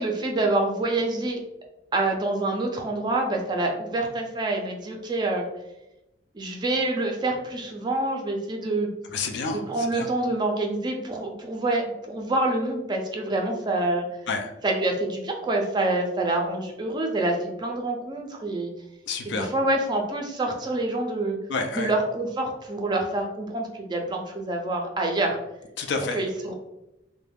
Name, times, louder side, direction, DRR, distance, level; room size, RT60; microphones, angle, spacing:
voice 1, 0.0-1.4 1.9-5.4 6.3-8.9 9.5-14.1 14.6-18.7 19.4-21.4 21.7-25.4 26.1-26.5, right 2 dB, 25° right, 2 dB, 0.4 m, -26 dB
voice 2, 9.1-9.6 9.9-10.1 14.3-14.5 19.1-19.5 21.5-21.9 25.8-26.2, left 4 dB, 70° left, 4 dB, 0.4 m, -28 dB
2.4 x 2.1 x 3.3 m, 0.91 s
head